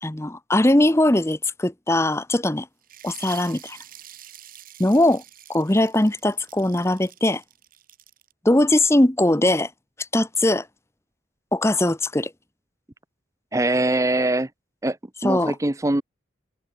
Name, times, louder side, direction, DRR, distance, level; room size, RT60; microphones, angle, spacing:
voice 1, 0.0-2.7 3.0-3.8 4.8-5.2 5.5-7.4 8.4-9.7 10.0-10.7 11.5-12.3 15.2-15.6, left 1 dB, 15° left, 0.8 m, -20 dB
sound 1, 2.8-8.3, right 12 dB, 45° right, 5.2 m, -46 dB
voice 2, 13.5-14.5 14.8-15.0 15.2-16.0, right 1 dB, 15° right, 0.7 m, -22 dB
head